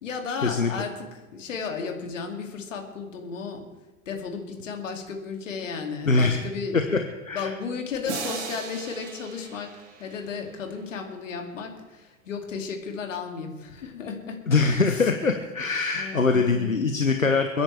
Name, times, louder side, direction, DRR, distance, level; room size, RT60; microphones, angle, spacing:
voice 1, 0.0-3.7 4.1-6.9 7.3-9.7 10.0-14.6 14.9-15.1 15.9-16.8, left 5 dB, 70° left, 3 dB, 2.7 m, -34 dB
voice 2, 6.1-6.4 6.7-6.8 7.2-7.5 14.5-17.6, left 4 dB, 90° left, 6 dB, 1.1 m, -23 dB
sound 1, 8.1-10.9, right 6 dB, 60° right, 2.6 m, -38 dB
30.0 x 10.0 x 3.4 m, 1.2 s
figure-of-eight pair, 75°, 39 cm